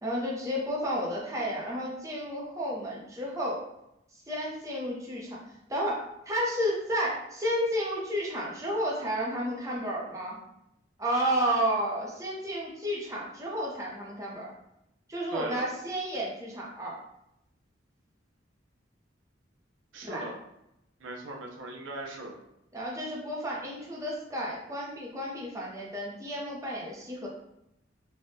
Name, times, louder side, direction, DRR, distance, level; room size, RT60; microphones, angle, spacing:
voice 1, 0.0-3.6 4.3-5.4 5.7-10.4 11.0-14.5 15.1-17.0 20.0-20.3 22.7-27.3, equal, 15° right, -4 dB, 0.6 m, -32 dB
voice 2, 15.3-15.7 19.9-20.4 21.0-22.3, right 2 dB, 85° right, 0 dB, 0.6 m, -38 dB
3.3 x 2.2 x 2.7 m, 0.83 s
head